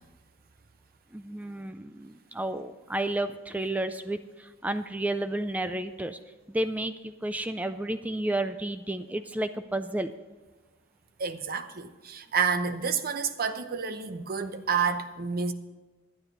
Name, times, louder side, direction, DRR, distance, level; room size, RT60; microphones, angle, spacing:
voice 1, 1.1-6.2 6.5-10.1, right 1 dB, 5° right, 0.3 m, -31 dB
voice 2, 11.2-15.5, right 6 dB, 45° right, 0.8 m, -29 dB
11.5 x 9.8 x 5.4 m
head